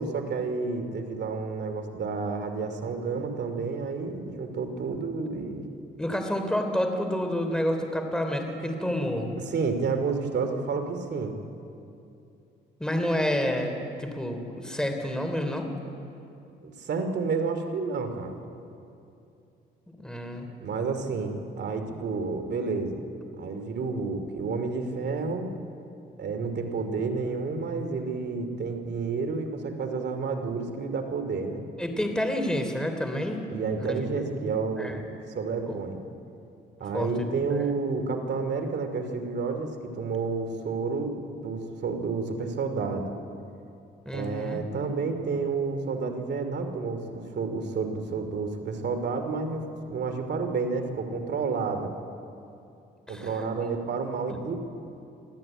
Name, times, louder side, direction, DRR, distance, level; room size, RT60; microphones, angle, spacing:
voice 1, 0.0-5.7 9.4-11.4 16.6-18.4 20.6-23.0 23.4-25.6 26.2-31.6 33.5-35.0 35.3-36.0 36.8-41.1 41.4-43.1 44.1-51.9 53.1-54.5, right 4 dB, 60° right, 6 dB, 2.6 m, -30 dB
voice 2, 6.0-9.3 12.8-15.7 20.0-20.5 31.8-33.4 33.8-34.4 34.8-35.0 35.7-35.8 36.9-37.1 37.5-37.7 44.0-44.6 53.1-53.7 54.3-54.4, left 1 dB, 5° left, 5 dB, 3.3 m, -29 dB
24.0 x 15.0 x 8.9 m, 2.7 s
cardioid pair, 90°, 20 cm